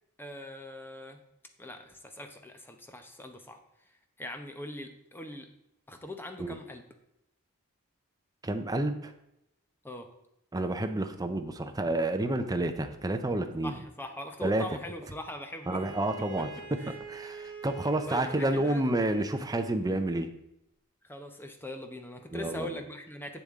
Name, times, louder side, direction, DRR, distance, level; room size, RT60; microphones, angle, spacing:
voice 1, 0.2-1.2 1.6-3.6 4.2-5.5 5.9-6.8 9.8-10.1 13.6-15.8 16.8-16.9 18.1-18.8 21.0-23.4, left 1 dB, 10° left, 5 dB, 0.8 m, -41 dB
voice 2, 8.4-9.1 10.5-13.7 14.4-14.7 15.7-16.5 17.1-20.3 22.3-22.7, right 1 dB, 15° right, 7 dB, 0.6 m, -29 dB
Bowed string instrument, 15.6-19.8, right 4 dB, 55° right, 2.4 m, -45 dB
8.1 x 7.0 x 3.6 m, 0.83 s
head